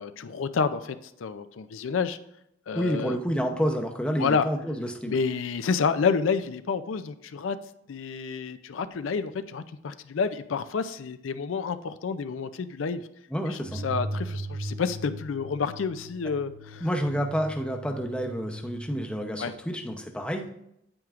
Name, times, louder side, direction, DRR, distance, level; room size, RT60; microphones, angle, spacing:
voice 1, 0.0-2.2 2.7-3.2 4.2-4.5 5.1-7.6 7.9-13.0 13.5-16.9 19.4-19.5, left 5 dB, 80° left, 11 dB, 0.4 m, -29 dB
voice 2, 2.7-5.2 13.3-13.8 16.8-20.5, equal, 5° left, 3 dB, 0.7 m, -29 dB
sound 1, 13.6-19.3, right 1 dB, 85° right, 0.8 m, -38 dB
9.0 x 8.8 x 2.5 m, 0.76 s
head